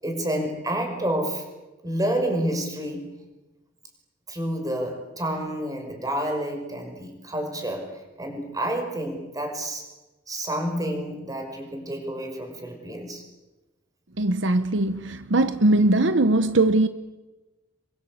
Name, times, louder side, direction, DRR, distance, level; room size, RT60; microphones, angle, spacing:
voice 1, 0.0-1.5 1.8-3.1 4.3-9.8 10.3-13.2, right 1 dB, 20° right, 5.7 m, -29 dB
voice 2, 14.2-16.9, right 2 dB, 70° right, 1.0 m, -20 dB
27.5 x 23.5 x 8.6 m
head